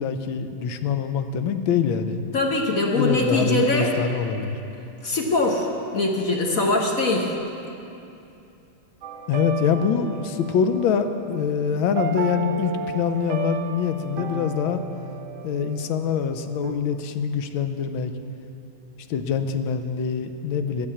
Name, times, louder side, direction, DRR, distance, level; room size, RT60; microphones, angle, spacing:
voice 1, 0.0-2.2 2.9-4.5 9.3-14.8 15.4-18.1 19.1-20.9, left 7 dB, 90° left, 8 dB, 1.5 m, -24 dB
voice 2, 2.3-3.9 5.0-7.3, left 2 dB, 50° left, 0 dB, 1.3 m, -22 dB
sound 1, 9.0-16.7, right 5 dB, 70° right, 0.7 m, -33 dB
11.0 x 8.5 x 8.5 m, 2.7 s
omnidirectional pair, 2.2 m